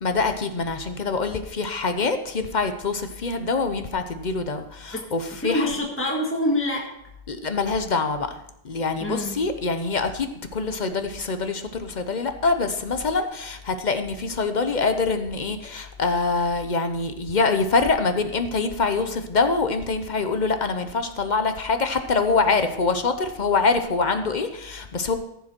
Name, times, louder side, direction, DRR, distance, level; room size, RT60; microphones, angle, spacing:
voice 1, 0.0-5.7 7.3-8.4 8.6-25.1, left 4 dB, 45° left, 8 dB, 0.9 m, -25 dB
voice 2, 5.4-6.8 9.0-9.4, left 1 dB, 10° left, -1 dB, 1.7 m, -25 dB
14.5 x 7.2 x 4.4 m, 0.77 s
omnidirectional pair, 1.1 m